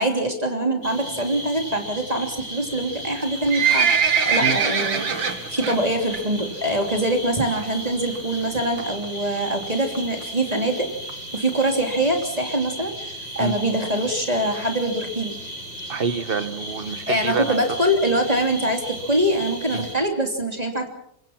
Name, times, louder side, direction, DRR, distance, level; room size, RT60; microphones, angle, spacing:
voice 1, 0.0-3.9 4.2-10.9 11.3-15.4 17.1-20.9, right 1 dB, 20° right, 4 dB, 3.2 m, -24 dB
sound 1, 0.8-20.0, right 1 dB, 70° left, 6.4 m, -36 dB
Livestock farm animals working animals, 3.1-5.8 6.1-6.4 6.7-6.8 7.5-7.6 7.9-8.0 8.1-8.2 8.8-9.0 9.6-9.7 9.9-10.0 10.2-10.3 10.5-10.6 11.1-11.2 11.7-11.8 12.2-12.3, right 6 dB, 80° right, 2.7 m, -22 dB
voice 2, 15.9-17.5 19.7-19.9, right 4 dB, 35° right, 12 dB, 1.2 m, -26 dB
25.0 x 22.0 x 6.0 m, 0.71 s
omnidirectional pair, 2.0 m